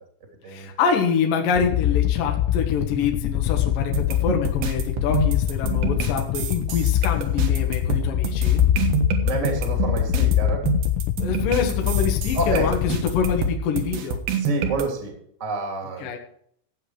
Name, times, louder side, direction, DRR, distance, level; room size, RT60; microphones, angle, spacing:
voice 1, 0.5-8.6 11.2-14.2 16.0-16.2, left 6 dB, 60° left, 2 dB, 2.5 m, -26 dB
sound 1, 1.6-13.4, left 12 dB, 85° left, 3.4 m, -24 dB
sound 2, 3.9-14.8, right 5 dB, 65° right, 2.8 m, -27 dB
voice 2, 9.2-10.6 12.3-12.7 14.4-15.1 15.4-16.1, right 3 dB, 20° right, 2 dB, 2.3 m, -28 dB
15.5 x 8.4 x 4.9 m, 0.66 s
omnidirectional pair, 5.9 m